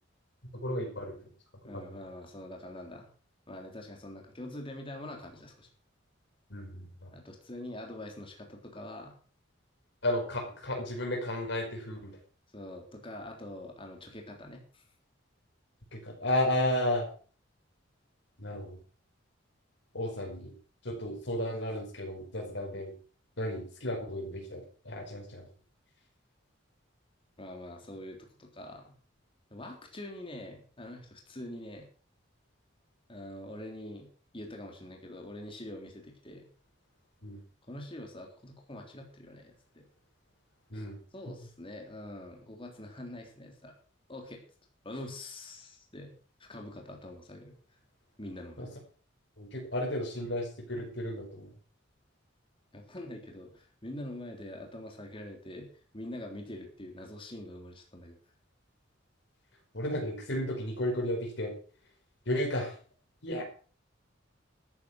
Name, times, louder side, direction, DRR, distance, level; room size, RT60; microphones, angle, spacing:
voice 1, 0.6-1.3 1.7-1.8 6.5-7.1 10.0-12.2 15.9-17.1 18.4-18.8 19.9-20.5 20.8-22.9 23.4-25.5 37.2-37.4 40.7-41.0 48.6-48.7 49.4-51.5 59.7-61.5 62.3-62.8 63.2-63.4, left 1 dB, 65° left, 3 dB, 5.2 m, -33 dB
voice 2, 1.6-3.1 3.5-5.7 7.1-9.2 12.5-14.8 27.4-28.9 29.5-31.9 33.1-34.1 34.3-36.5 37.7-39.8 40.7-40.9 41.1-43.7 44.1-44.4 44.8-47.5 48.2-48.7 52.7-58.2, left 1 dB, 30° left, 2 dB, 3.6 m, -44 dB
13.5 x 9.6 x 6.3 m, 0.41 s
head